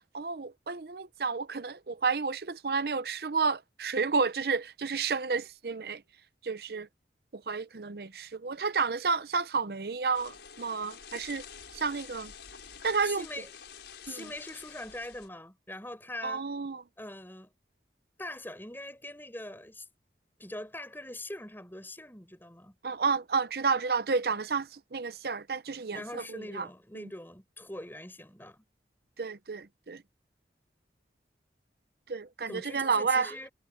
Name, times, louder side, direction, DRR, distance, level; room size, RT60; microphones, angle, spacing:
voice 1, 0.0-6.0 6.4-6.9 7.3-11.4 11.7-12.3 12.8-13.2 14.1-14.2 16.2-16.8 22.8-26.7 26.9-27.1 29.2-30.0 32.1-33.3, right 5 dB, 60° right, 0.7 m, -31 dB
sound 1, 10.1-15.3, left 7 dB, 75° left, 4.8 m, -48 dB
voice 2, 13.0-13.5 14.0-16.4 17.0-17.5 18.2-19.9 20.4-22.8 25.9-28.6 32.5-33.5, left 1 dB, 10° left, 6.1 m, -42 dB
head